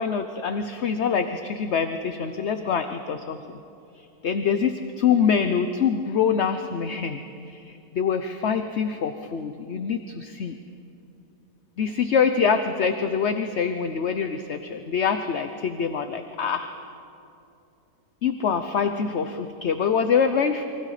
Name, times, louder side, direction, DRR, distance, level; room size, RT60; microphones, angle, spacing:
voice 1, 0.0-3.6 4.0-7.2 7.5-10.6 11.8-16.7 18.2-20.7, left 6 dB, 50° left, 8 dB, 1.0 m, -25 dB
29.0 x 24.0 x 5.0 m, 2.7 s
omnidirectional pair, 1.7 m